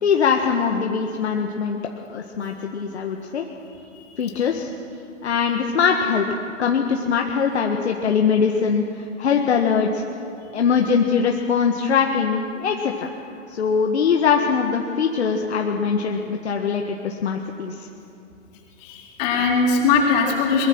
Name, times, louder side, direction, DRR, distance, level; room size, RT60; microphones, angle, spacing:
voice 1, 0.0-3.5 4.2-4.7 5.2-10.0 10.5-13.1 13.5-17.9, left 6 dB, 55° left, 2 dB, 1.8 m, -22 dB
voice 2, 18.8-20.7, left 5 dB, 30° left, -2 dB, 4.4 m, -20 dB
23.0 x 23.0 x 6.2 m, 2.7 s
figure-of-eight pair, 135°, 38 cm